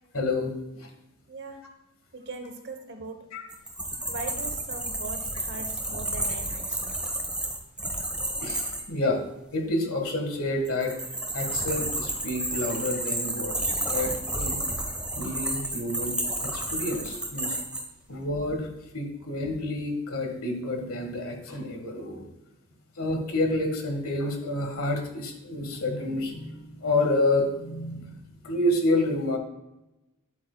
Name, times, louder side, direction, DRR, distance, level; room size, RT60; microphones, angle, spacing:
voice 1, 0.1-0.9 3.3-3.4 8.4-9.2 9.5-11.0 11.3-14.6 15.1-17.5 18.1-18.7 18.9-22.2 23.0-28.2 28.4-29.4, left 2 dB, 65° left, 3 dB, 1.7 m, -29 dB
voice 2, 1.3-1.6 2.1-3.3 4.1-6.9, right 3 dB, 55° right, 6 dB, 1.0 m, -40 dB
sound 1, 3.5-8.8 10.6-17.8, right 1 dB, 5° right, 1.2 m, -31 dB
10.0 x 8.5 x 2.3 m, 0.92 s
head